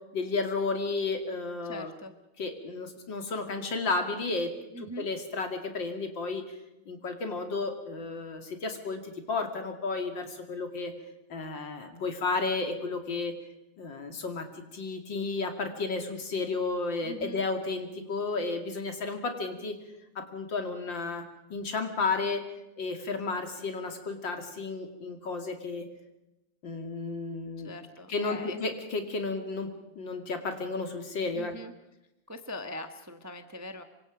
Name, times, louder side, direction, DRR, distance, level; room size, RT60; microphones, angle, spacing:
voice 1, 0.1-1.9 2.4-4.5 4.8-6.5 6.9-10.9 11.3-13.3 13.8-19.8 20.1-21.2 21.5-22.4 22.8-25.9 26.6-27.7 28.1-29.7 30.0-31.5, left 3 dB, 65° left, 5 dB, 3.1 m, -32 dB
voice 2, 1.6-2.1 4.7-5.1 17.0-17.4 27.6-28.6 31.3-31.7 32.3-33.8, left 1 dB, 10° right, 7 dB, 1.0 m, -41 dB
26.5 x 24.5 x 5.1 m, 0.93 s
omnidirectional pair, 2.2 m